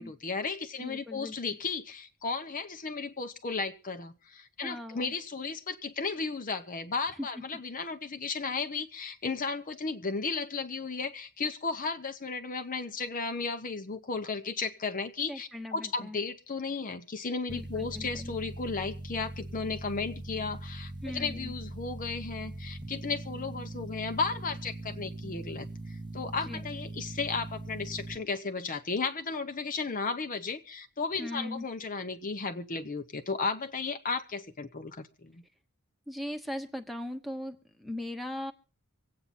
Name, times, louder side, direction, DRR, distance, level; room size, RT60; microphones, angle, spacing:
voice 1, 0.0-35.4, left 4 dB, 40° left, 7 dB, 0.9 m, -34 dB
voice 2, 0.8-1.3 4.6-5.1 7.2-7.4 15.3-16.2 17.5-18.3 21.0-21.5 26.4-26.7 31.2-31.6 36.1-38.5, left 1 dB, ahead, 5 dB, 1.2 m, -39 dB
sound 1, 17.5-28.2, right 1 dB, 20° right, 0.9 m, -41 dB
25.0 x 8.7 x 4.2 m, 0.35 s
head